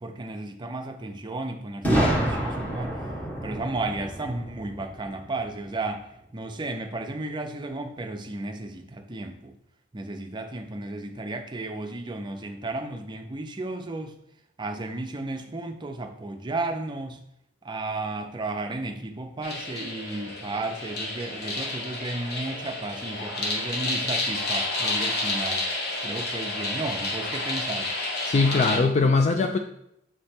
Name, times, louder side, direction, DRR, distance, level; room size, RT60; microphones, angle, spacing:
voice 1, 0.0-3.0 3.4-9.5 9.9-14.2 14.6-17.2 17.6-25.7 26.0-27.9, right 2 dB, 25° right, 5 dB, 0.5 m, -33 dB
Boom, 1.8-5.7, right 1 dB, 10° left, 1.2 m, -28 dB
sound 1, 19.4-28.8, left 2 dB, 55° left, 1.1 m, -30 dB
voice 2, 28.2-29.6, left 3 dB, 35° left, 5 dB, 0.3 m, -21 dB
6.5 x 3.3 x 4.3 m, 0.78 s
head